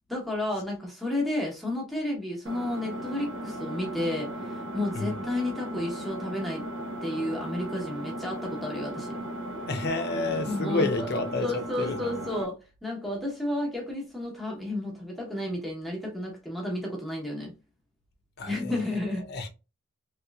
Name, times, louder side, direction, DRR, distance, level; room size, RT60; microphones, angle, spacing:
voice 1, 0.1-6.6 7.0-9.2 10.4-11.1 11.4-17.5 18.5-19.2, left 1 dB, ahead, 1.0 m, -32 dB
Engine, 2.5-12.5, right 1 dB, 60° right, 0.6 m, -36 dB
voice 2, 9.7-12.1 18.4-19.0 19.3-19.5, left 2 dB, 50° left, 0.6 m, -30 dB
3.1 x 2.9 x 2.3 m
head